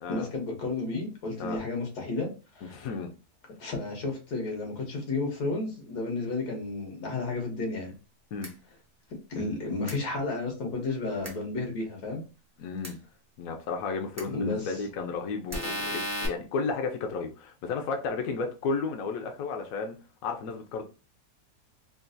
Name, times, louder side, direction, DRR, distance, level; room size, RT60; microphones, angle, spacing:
voice 1, 0.1-2.9 3.6-7.9 9.3-12.2 14.3-14.8, left 3 dB, 85° left, 1.7 m, -32 dB
voice 2, 2.6-3.1 8.3-8.5 12.6-13.0 13.4-20.0 20.2-20.8, left 4 dB, 70° left, 1.0 m, -33 dB
sound 1, 8.4-8.5 9.9-10.0 11.2-11.3 12.8-12.9 14.2-14.3 15.5-16.3, equal, 15° right, 0.6 m, -33 dB
3.8 x 2.4 x 2.5 m
omnidirectional pair, 1.7 m